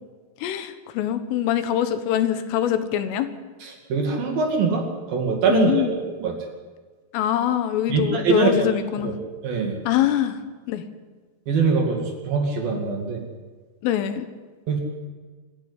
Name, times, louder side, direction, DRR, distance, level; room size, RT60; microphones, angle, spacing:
voice 1, 0.4-3.3 5.5-5.9 7.1-9.2 9.9-10.4 10.7-10.8 13.8-14.3, left 11 dB, 85° left, 10 dB, 3.9 m, -23 dB
voice 2, 3.6-6.3 7.9-8.5 9.0-9.1 9.4-9.8 11.5-13.2 14.7-14.8, right 4 dB, 55° right, 2 dB, 3.8 m, -23 dB
26.0 x 10.5 x 9.8 m, 1.4 s
omnidirectional pair, 5.6 m